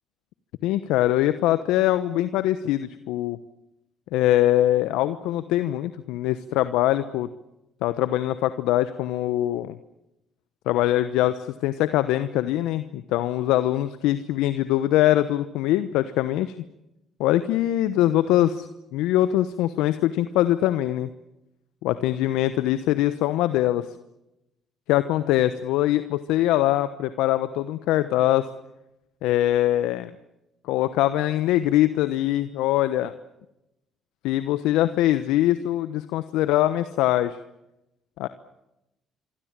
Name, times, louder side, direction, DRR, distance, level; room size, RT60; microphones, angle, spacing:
voice 1, 0.6-3.4 4.1-7.3 7.8-9.8 10.7-16.5 17.2-21.1 21.8-23.9 24.9-28.5 29.2-30.1 30.7-33.1 34.2-37.4 38.2-38.3, left 14 dB, 75° left, 12 dB, 1.0 m, -23 dB
26.0 x 25.0 x 7.5 m, 0.91 s
hypercardioid pair, 55°, 0 cm